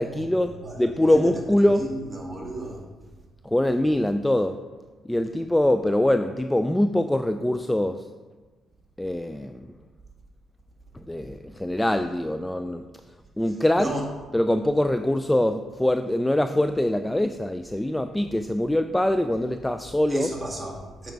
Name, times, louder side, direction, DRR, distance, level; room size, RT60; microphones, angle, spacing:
voice 1, 0.0-1.9 3.4-4.6 5.1-8.1 9.0-9.7 10.9-12.9 13.4-13.9 14.3-20.3, left 1 dB, 10° left, 8 dB, 0.3 m, -23 dB
voice 2, 0.6-2.8 13.8-14.1 20.1-21.1, right 1 dB, 15° right, -1 dB, 1.9 m, -33 dB
7.8 x 5.1 x 4.6 m, 1.3 s
cardioid pair, 90°, 0 cm